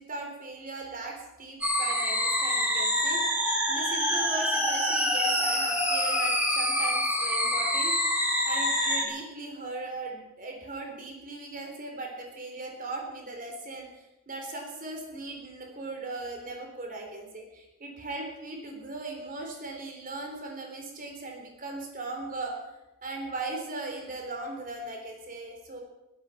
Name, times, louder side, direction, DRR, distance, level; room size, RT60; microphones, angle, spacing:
voice 1, 0.0-7.9 8.5-22.7 23.0-25.8, right 2 dB, 40° right, 2 dB, 3.7 m, -38 dB
sound 1, 1.6-9.0, equal, 5° right, 3.0 m, -26 dB
16.0 x 13.0 x 5.8 m, 0.94 s
head